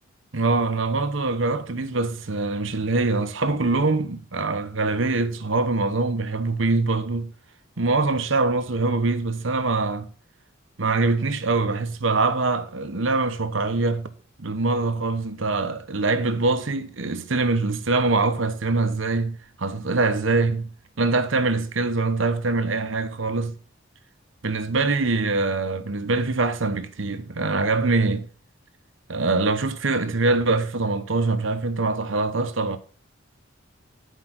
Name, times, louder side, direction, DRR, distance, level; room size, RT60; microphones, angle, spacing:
voice 1, 0.3-7.3 7.8-10.1 10.8-14.1 14.4-23.6 24.4-28.3 29.1-32.8, right 3 dB, 75° right, 1.0 m, -24 dB
10.0 x 5.0 x 6.0 m
head